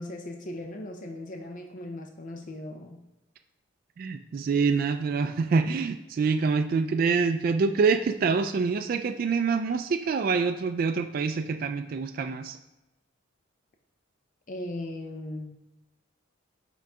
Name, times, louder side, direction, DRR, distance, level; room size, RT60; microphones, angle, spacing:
voice 1, 0.0-3.0 14.5-15.6, left 1 dB, 40° left, 4 dB, 0.5 m, -38 dB
voice 2, 4.0-12.6, right 5 dB, 45° right, 7 dB, 0.3 m, -26 dB
5.6 x 3.8 x 4.8 m, 1.0 s
head